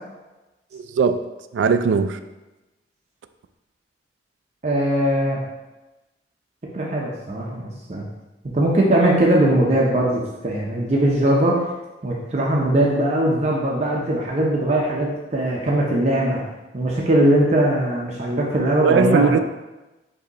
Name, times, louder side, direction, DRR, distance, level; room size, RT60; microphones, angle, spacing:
voice 1, 0.7-1.2 1.5-2.2 18.8-19.4, right 5 dB, 85° right, 10 dB, 0.3 m, -19 dB
voice 2, 4.6-5.4 6.7-8.0 8.5-11.6 12.0-16.4 16.7-19.4, right 1 dB, 40° right, -3 dB, 0.6 m, -20 dB
4.9 x 2.7 x 3.9 m, 1.1 s
head